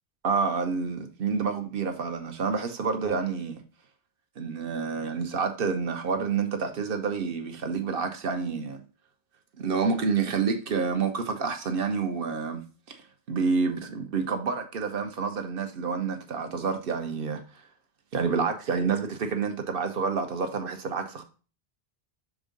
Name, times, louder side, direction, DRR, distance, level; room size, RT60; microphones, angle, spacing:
voice 1, 0.2-3.6 4.4-8.8 9.6-13.0 13.3-17.4 18.1-21.2, right 5 dB, 65° right, 1.1 m, -28 dB
6.3 x 3.6 x 5.2 m
omnidirectional pair, 1.0 m